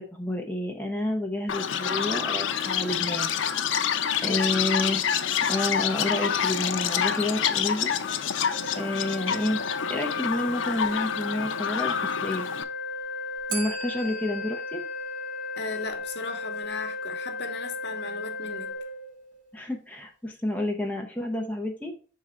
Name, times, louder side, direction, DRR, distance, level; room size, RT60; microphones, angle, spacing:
voice 1, 0.0-3.3 4.2-5.0 5.5-7.9 8.8-9.6 9.9-12.0 12.2-12.5 13.5-14.8 19.5-21.9, left 1 dB, 10° left, 0.7 m, -29 dB
Chirp tweet, 1.5-12.6, left 8 dB, 90° left, 0.5 m, -27 dB
voice 2, 4.3-4.8 15.5-18.7, left 3 dB, 60° left, 1.0 m, -37 dB
Organ, 8.5-19.5, left 3 dB, 85° right, 1.8 m, -35 dB
Bell, 13.5-16.3, right 5 dB, 45° right, 0.7 m, -40 dB
6.2 x 3.7 x 4.3 m
head